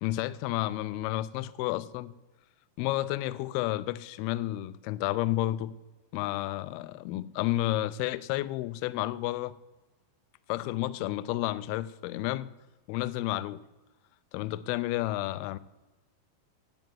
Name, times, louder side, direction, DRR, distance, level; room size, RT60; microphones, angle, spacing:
voice 1, 0.0-2.1 2.8-5.8 6.1-9.6 10.5-12.5 12.9-13.6 14.3-15.6, left 15 dB, 85° left, 2.2 m, -31 dB
10.5 x 9.2 x 7.6 m
omnidirectional pair, 5.0 m